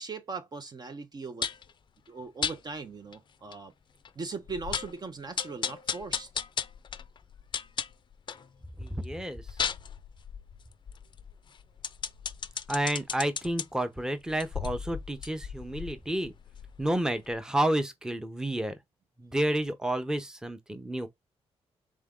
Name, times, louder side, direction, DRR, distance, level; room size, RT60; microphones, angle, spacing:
voice 1, 0.0-1.5 2.1-3.7 4.2-6.3, right 4 dB, 40° right, 0.6 m, -39 dB
sound 1, 1.4-1.7 2.4-2.6 3.1-3.2 3.5-3.6 4.1-4.2 4.5-5.0 5.4-8.5 8.9-13.7 14.3-17.0 17.3-17.4, left 7 dB, 45° left, 0.4 m, -35 dB
voice 2, 8.8-9.4 12.7-16.3 16.8-18.7 19.2-21.1, right 1 dB, 5° right, 0.7 m, -30 dB
3.6 x 3.6 x 3.7 m
cardioid pair, 100°, 11 cm